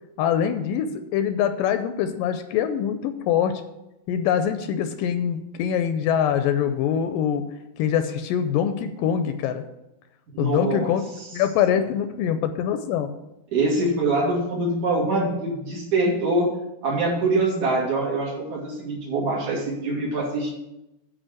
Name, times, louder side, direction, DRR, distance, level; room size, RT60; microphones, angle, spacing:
voice 1, 0.2-3.6 4.1-7.4 7.8-9.6 10.4-11.0 11.3-13.1, left 9 dB, 80° left, 9 dB, 2.1 m, -24 dB
voice 2, 10.3-10.9 13.5-16.5 16.8-20.5, right 2 dB, 55° right, -4 dB, 3.8 m, -24 dB
8.9 x 4.9 x 7.6 m, 0.91 s
omnidirectional pair, 4.1 m